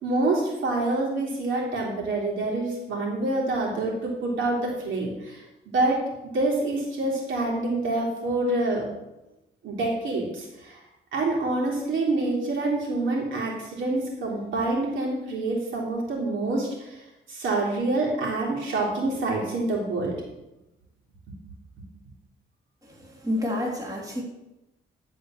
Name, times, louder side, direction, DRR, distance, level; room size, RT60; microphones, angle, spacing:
voice 1, 0.0-5.4 5.7-6.0 6.3-8.8 9.6-10.8 11.1-16.9 17.3-20.1, right 2 dB, 75° right, -3 dB, 3.4 m, -26 dB
voice 2, 22.8-24.2, left 1 dB, 15° right, -2 dB, 2.7 m, -29 dB
11.5 x 5.0 x 6.4 m, 0.95 s
cardioid pair, 90°, 20 cm